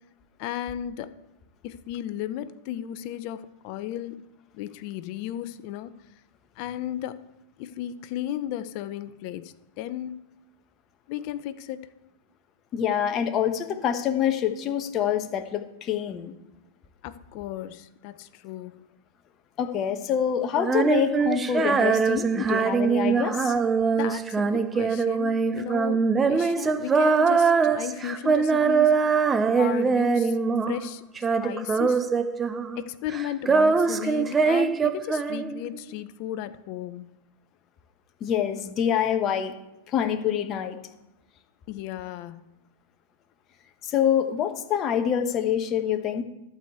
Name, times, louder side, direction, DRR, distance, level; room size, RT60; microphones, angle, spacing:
voice 1, 0.4-1.2 1.6-4.2 4.5-5.9 6.6-7.2 7.6-10.2 11.1-11.9 17.0-18.8 23.9-29.0 29.5-30.4 30.7-31.0 31.4-32.1 32.8-37.0 41.7-42.5, left 12 dB, 50° left, 0.7 m, -34 dB
voice 2, 12.7-16.3 19.6-23.5 38.2-39.5 39.9-40.8 43.8-46.2, left 9 dB, 35° left, 1.2 m, -26 dB
Female singing, 20.6-30.9 31.2-32.8 33.1-35.8, right 5 dB, 20° right, 0.6 m, -23 dB
12.0 x 4.9 x 8.0 m
hypercardioid pair, 110°, 0 cm